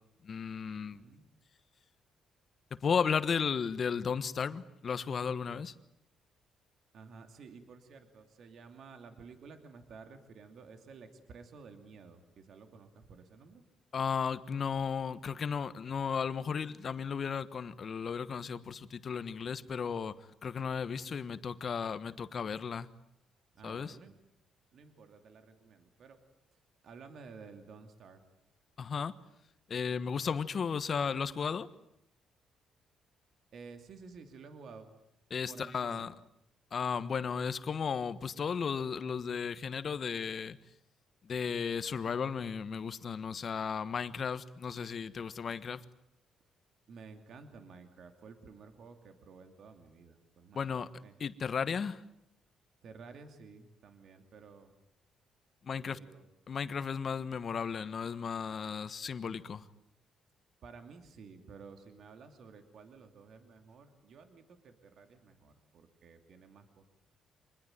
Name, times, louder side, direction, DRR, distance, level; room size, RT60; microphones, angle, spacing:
voice 1, 0.2-1.0 2.8-5.7 13.9-20.1 20.4-22.9 23.6-23.9 28.8-29.1 29.7-31.7 35.3-36.1 36.7-40.6 41.2-45.8 50.5-50.9 51.2-52.0 55.6-56.0 56.5-59.6, left 6 dB, 50° left, 1.3 m, -34 dB
voice 2, 0.7-1.3 6.9-13.6 23.5-24.1 24.7-26.2 26.5-28.2 33.5-34.9 35.4-36.1 46.9-51.2 52.8-54.7 55.7-56.2 60.6-66.8, right 5 dB, 65° right, 2.7 m, -53 dB
25.5 x 21.0 x 9.2 m
cardioid pair, 90°, 0 cm